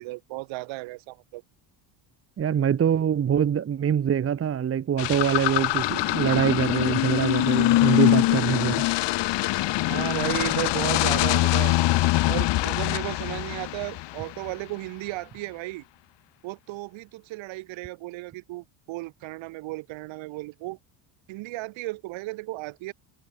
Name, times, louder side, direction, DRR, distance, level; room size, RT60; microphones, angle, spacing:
voice 1, 0.0-1.4 9.9-11.8 12.3-15.8 16.4-20.8 21.3-22.9, right 21 dB, 70° right, 4.1 m, -34 dB
voice 2, 2.4-8.9, right 8 dB, 30° right, 1.9 m, -24 dB
sound 1, 5.0-14.5, left 17 dB, 60° left, 3.5 m, -23 dB
cardioid pair, 155°, 48 cm